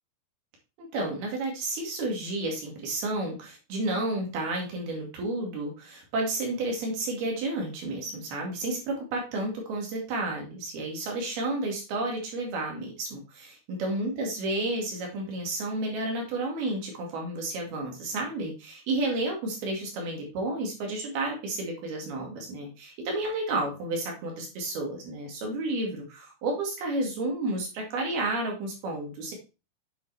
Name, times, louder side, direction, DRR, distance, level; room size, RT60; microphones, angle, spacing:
voice 1, 0.8-29.3, right 2 dB, 60° right, 0 dB, 3.9 m, -31 dB
9.8 x 7.5 x 3.4 m, 0.30 s
omnidirectional pair, 5.2 m